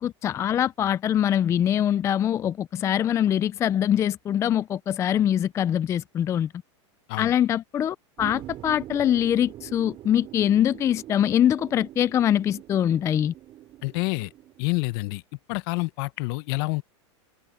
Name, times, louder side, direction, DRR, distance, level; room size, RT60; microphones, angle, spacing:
voice 1, 0.0-6.5 7.2-13.3, left 10 dB, 20° left, 0.4 m, -23 dB
sound 1, 8.2-14.7, right 14 dB, 35° right, 5.0 m, -43 dB
voice 2, 13.8-14.3 14.6-15.2 15.5-16.8, left 24 dB, 50° left, 1.1 m, -27 dB
supercardioid pair, 135°, 15 cm